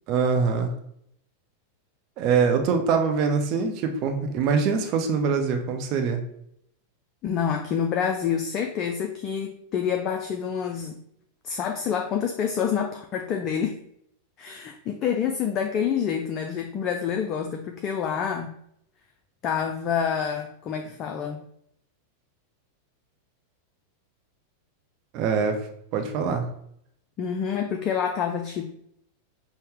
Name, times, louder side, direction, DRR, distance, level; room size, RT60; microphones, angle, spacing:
voice 1, 0.1-0.7 2.2-6.2 25.1-25.6 25.9-26.5, right 5 dB, 40° right, 4 dB, 0.6 m, -23 dB
voice 2, 7.2-11.0 11.4-13.7 14.4-18.5 19.4-21.4 27.2-28.6, left 7 dB, 35° left, 4 dB, 0.3 m, -27 dB
5.4 x 2.1 x 3.4 m, 0.72 s
figure-of-eight pair, 90°, 0 cm